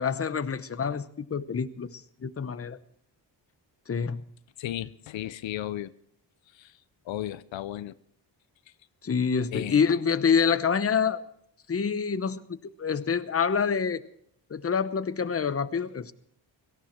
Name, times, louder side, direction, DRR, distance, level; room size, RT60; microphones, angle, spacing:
voice 1, 0.0-2.8 3.9-4.2 9.0-11.2 11.7-14.0 14.5-16.1, left 6 dB, 30° left, 0.9 m, -27 dB
voice 2, 4.6-5.9 6.5-6.7 7.1-7.9 9.5-9.8, left 13 dB, 85° left, 0.6 m, -34 dB
17.5 x 14.5 x 4.4 m
cardioid pair, 75°, 44 cm